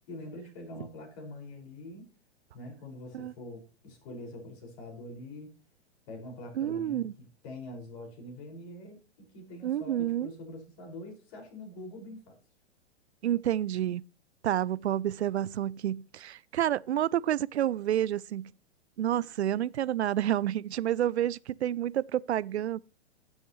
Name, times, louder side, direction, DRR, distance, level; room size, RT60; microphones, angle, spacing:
voice 1, 0.1-2.1 2.5-5.5 6.1-12.4, left 1 dB, 45° left, 5.6 m, -44 dB
voice 2, 6.6-7.1 9.6-10.3 13.2-14.0 14.4-18.5 19.0-22.8, right 11 dB, 70° right, 0.5 m, -29 dB
15.0 x 7.6 x 3.1 m
figure-of-eight pair, 110°, 34 cm